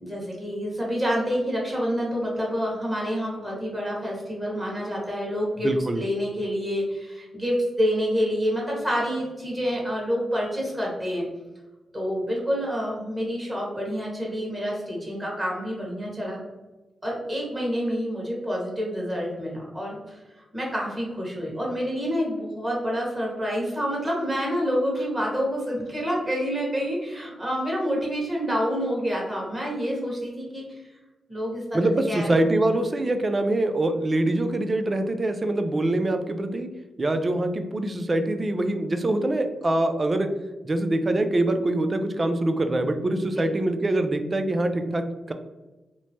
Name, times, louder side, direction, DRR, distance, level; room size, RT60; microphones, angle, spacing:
voice 1, 0.0-5.7 5.9-11.2 11.9-16.4 17.0-20.2 20.5-30.9 31.3-31.8 32.1-32.4 43.4-43.5, equal, 20° right, -3 dB, 1.4 m, -28 dB
voice 2, 5.6-6.0 31.7-36.7 37.0-40.3 40.6-45.3, right 1 dB, 40° right, 7 dB, 0.3 m, -24 dB
2.9 x 2.1 x 2.7 m, 1.1 s
cardioid pair, 55°, 0 cm